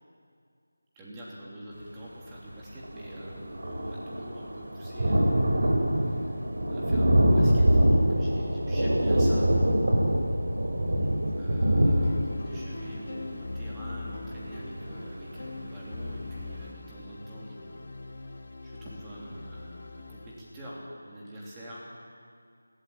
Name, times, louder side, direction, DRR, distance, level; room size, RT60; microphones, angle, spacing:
voice 1, 0.9-5.3 6.7-9.5 11.4-17.9 18.6-21.8, equal, 10° right, -6 dB, 3.2 m, -45 dB
Thunder, 2.5-2.6 2.8-15.4 15.9-16.0 16.3-16.4, equal, 70° right, 5.1 m, -25 dB
sound 1, 11.8-20.6, left 3 dB, 50° left, 2.4 m, -41 dB
22.5 x 17.0 x 8.9 m, 2.2 s
figure-of-eight pair, 175°, 0 cm